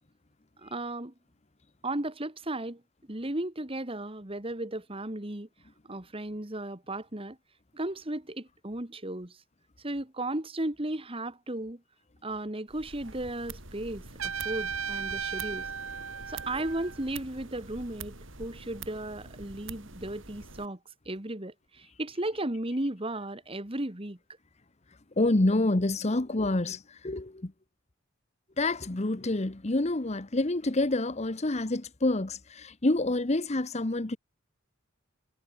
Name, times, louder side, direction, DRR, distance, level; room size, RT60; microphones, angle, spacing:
voice 1, 0.6-1.1 1.8-2.8 3.1-5.5 5.9-7.4 7.7-9.4 9.8-11.8 12.2-15.7 16.3-20.8 21.1-24.2, right 1 dB, 25° right, 1.8 m, -35 dB
sound 1, 12.7-20.7, right 4 dB, 70° right, 6.8 m, -46 dB
Trumpet, 14.2-17.0, right 7 dB, 85° right, 2.7 m, -35 dB
voice 2, 25.2-26.8 27.0-27.3 28.6-34.2, left 2 dB, 35° left, 1.0 m, -27 dB
head